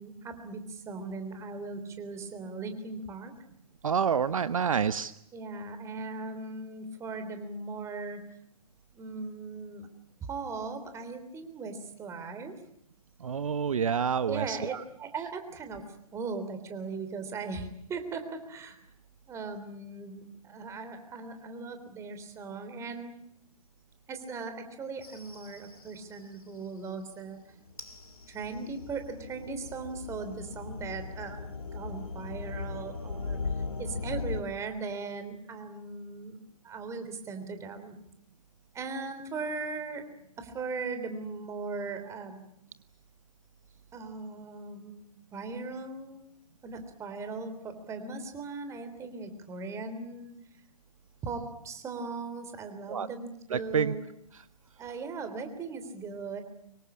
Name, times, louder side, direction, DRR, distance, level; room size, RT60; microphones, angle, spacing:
voice 1, 0.0-3.3 5.3-8.2 8.9-9.9 10.3-12.6 14.3-15.8 16.1-18.8 19.3-23.2 24.1-27.4 28.3-33.4 33.8-37.9 38.7-40.0 40.4-42.4 43.9-45.0 45.3-46.2 46.6-50.3 51.2-54.0 54.8-56.4, right 4 dB, 15° right, 8 dB, 3.4 m, -38 dB
voice 2, 3.8-5.1 13.2-14.8 52.9-53.1 53.5-53.9, right 7 dB, 60° right, 14 dB, 1.0 m, -28 dB
sound 1, 25.0-26.2 27.7-34.4, left 4 dB, 70° left, 2.6 m, -38 dB
25.0 x 23.0 x 8.6 m, 0.76 s
figure-of-eight pair, 125°, 19 cm